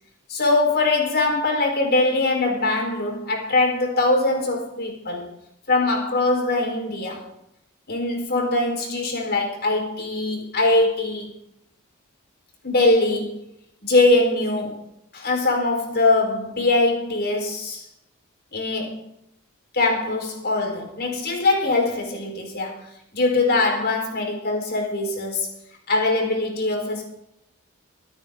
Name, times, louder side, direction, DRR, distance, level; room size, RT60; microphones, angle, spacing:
voice 1, 0.3-5.3 5.7-7.3 7.9-11.3 12.6-13.4 13.8-14.8 15.1-17.8 18.5-19.0 19.7-22.8 23.1-25.5 25.9-27.0, left 2 dB, 50° left, 4.4 m, -22 dB
25.0 x 9.7 x 3.8 m
head